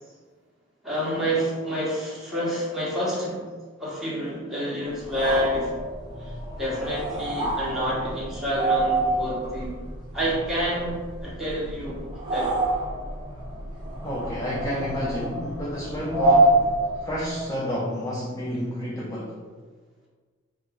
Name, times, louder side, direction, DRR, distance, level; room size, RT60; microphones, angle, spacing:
voice 1, 0.8-3.4 3.8-5.7 6.2-6.3 6.6-9.7 10.1-12.5, equal, ahead, -8 dB, 1.2 m, -28 dB
sound 1, 5.0-17.5, right 2 dB, 25° right, 0.8 m, -27 dB
voice 2, 14.0-16.6 17.0-19.4, equal, 15° left, -5 dB, 0.4 m, -29 dB
4.6 x 2.4 x 3.4 m, 1.5 s
head